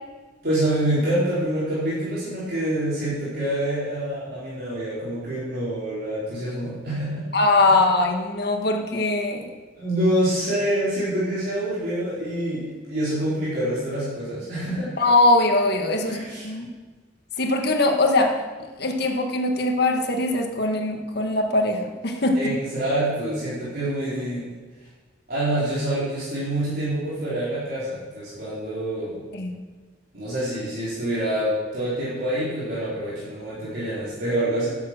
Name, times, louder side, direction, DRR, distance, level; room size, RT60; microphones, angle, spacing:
voice 1, 0.4-7.3 7.7-7.8 9.8-14.9 16.0-16.5 22.3-24.5 25.3-29.2 30.1-34.7, right 1 dB, 55° right, -10 dB, 4.2 m, -26 dB
voice 2, 7.3-9.5 15.0-16.7 17.4-22.4 29.3-29.6, left 2 dB, 60° left, 3 dB, 1.6 m, -21 dB
11.0 x 7.4 x 7.6 m, 1.4 s
head